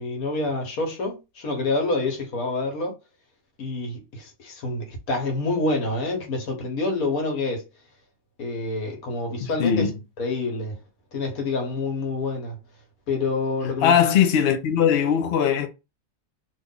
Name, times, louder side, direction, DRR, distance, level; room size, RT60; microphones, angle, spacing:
voice 1, 0.0-2.9 3.6-7.6 8.4-9.9 10.2-10.8 11.1-12.6 13.1-14.1, left 3 dB, 80° left, 1.6 m, -27 dB
voice 2, 9.4-9.9 13.6-15.7, left 8 dB, 55° left, 0.7 m, -20 dB
3.1 x 2.5 x 3.6 m
omnidirectional pair, 1.5 m